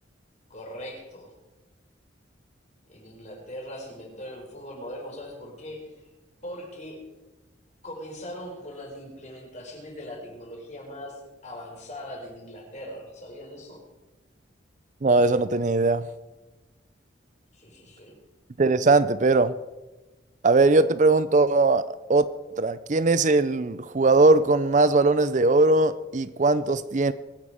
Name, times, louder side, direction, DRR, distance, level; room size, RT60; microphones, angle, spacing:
voice 1, 0.5-1.3 2.9-6.1 6.4-7.0 7.8-13.9 17.5-18.2, equal, 35° left, 4.8 m, -40 dB
voice 2, 15.0-16.1 18.6-19.5 20.4-22.2 22.5-27.1, right 3 dB, 40° right, 0.5 m, -20 dB
23.5 x 9.6 x 5.0 m
head